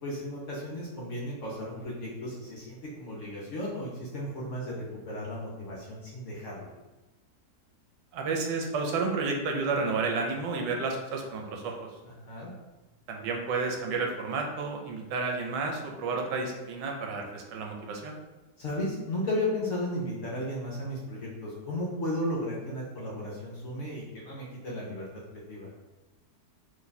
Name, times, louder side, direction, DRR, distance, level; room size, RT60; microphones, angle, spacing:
voice 1, 0.0-6.7 12.0-12.5 18.6-25.1 25.5-25.7, left 1 dB, 65° left, -4 dB, 0.7 m, -34 dB
voice 2, 8.1-11.9 13.1-18.2, right 4 dB, 80° right, 2 dB, 1.2 m, -31 dB
3.0 x 2.2 x 3.9 m, 1.2 s
omnidirectional pair, 1.9 m